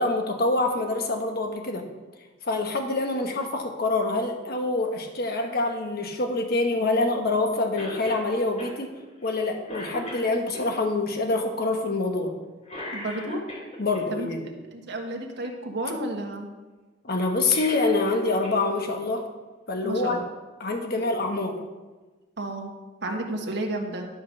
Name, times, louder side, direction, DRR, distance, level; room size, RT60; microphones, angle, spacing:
voice 1, 0.0-1.8 2.4-8.9 9.2-12.3 13.8-14.5 17.0-19.3 19.7-20.2 20.6-21.6, left 2 dB, 55° left, 4 dB, 1.2 m, -26 dB
Cough, 7.8-8.3 8.6-8.7 9.2-9.4 9.7-10.7 12.6-14.0 17.3-18.6 18.9-19.0 20.1-20.2, left 1 dB, 35° left, 3.3 m, -38 dB
voice 2, 12.9-13.4 14.1-14.3 14.7-16.5 19.8-20.2 22.4-22.7 23.0-24.1, right 1 dB, 60° right, 2 dB, 1.5 m, -31 dB
11.5 x 5.3 x 6.4 m, 1.2 s
head